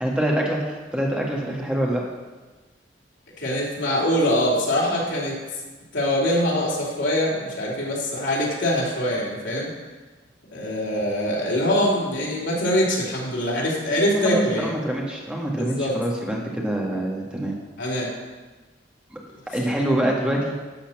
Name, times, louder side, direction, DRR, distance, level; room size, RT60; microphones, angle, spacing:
voice 1, 0.0-2.0 14.1-17.5 19.1-19.2 19.5-20.5, right 1 dB, 5° right, -2 dB, 1.6 m, -25 dB
voice 2, 3.4-5.4 5.9-9.7 10.5-14.7 15.6-15.9 17.8-18.1, left 1 dB, 85° left, -4 dB, 3.2 m, -23 dB
12.0 x 4.3 x 7.3 m, 1.3 s
head